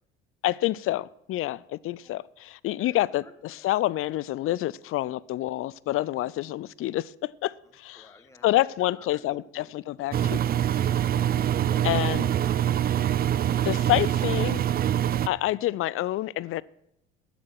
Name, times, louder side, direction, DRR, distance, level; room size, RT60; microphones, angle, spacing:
voice 1, 0.4-8.1 8.4-10.4 11.8-12.3 13.6-14.7 15.3-16.6, left 15 dB, 45° left, 0.5 m, -28 dB
voice 2, 2.8-3.3 8.0-8.5 8.8-9.7 10.0-10.2 10.7-11.1 11.4-12.2, left 2 dB, 10° left, 1.7 m, -51 dB
Engine, 10.1-15.3, right 10 dB, 30° right, 0.5 m, -24 dB
11.0 x 7.5 x 6.2 m
hypercardioid pair, 60°, 31 cm